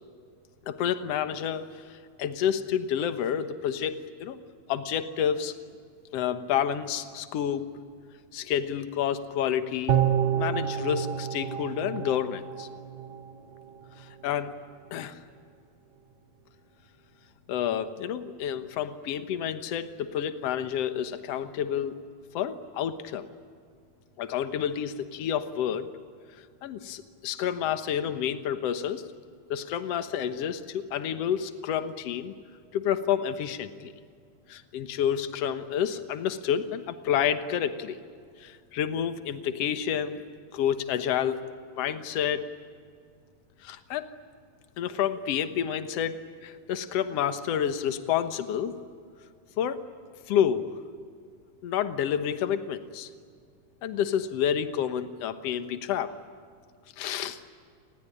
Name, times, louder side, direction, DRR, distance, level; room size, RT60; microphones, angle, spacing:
voice 1, 0.7-4.4 4.7-5.5 6.1-7.7 8.3-10.0 10.3-12.7 14.0-14.5 14.9-15.2 17.5-22.0 22.3-23.3 24.2-25.9 26.6-29.0 29.5-32.3 32.7-33.9 34.5-38.0 38.4-40.2 40.5-41.4 41.7-42.5 43.6-44.1 44.8-48.8 49.6-49.8 50.3-50.6 51.6-53.1 53.8-56.1 57.0-57.4, left 9 dB, 60° left, 10 dB, 2.1 m, -29 dB
sound 1, 9.9-13.2 13.6-13.7, right 9 dB, 85° right, 0.9 m, -28 dB
29.5 x 19.5 x 9.8 m, 2.2 s
omnidirectional pair, 3.5 m